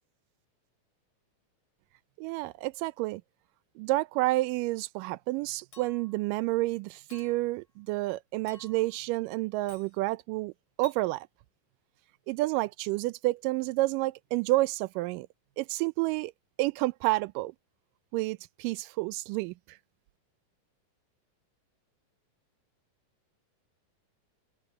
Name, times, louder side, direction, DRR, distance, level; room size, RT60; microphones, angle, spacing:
voice 1, 2.2-3.2 3.8-10.5 10.8-11.3 12.3-15.3 15.6-16.3 16.6-17.5 18.1-19.5, right 19 dB, 85° right, 2.1 m, -29 dB
Chink clink, 5.7-6.2 7.1-7.6 8.5-9.0 9.7-9.9 10.8-11.0, left 3 dB, 40° left, 5.7 m, -54 dB
omnidirectional pair, 3.8 m